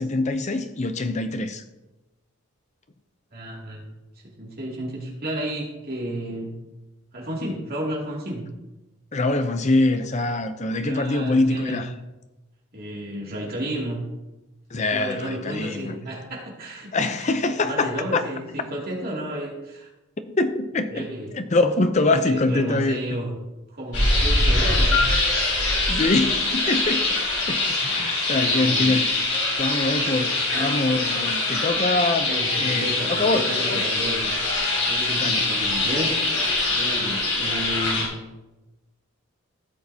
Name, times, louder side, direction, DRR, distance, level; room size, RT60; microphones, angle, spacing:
voice 1, 0.0-1.6 9.1-11.9 14.7-15.9 16.9-18.2 20.3-21.1 21.3-23.0 25.9-27.1 27.5-29.1 29.6-33.8 35.2-35.4, left 2 dB, 35° left, 0.6 m, -24 dB
voice 2, 3.3-3.8 4.4-6.6 7.1-8.5 10.8-11.9 12.7-14.1 14.9-17.3 17.6-19.9 20.9-21.3 22.1-23.4 23.7-25.1 28.3-29.0 30.3-30.4 32.2-34.4 34.9-38.1, right 1 dB, 45° right, 2.6 m, -32 dB
sound 1, 23.9-38.0, left 2 dB, 85° left, 3.3 m, -23 dB
16.0 x 6.4 x 2.8 m
head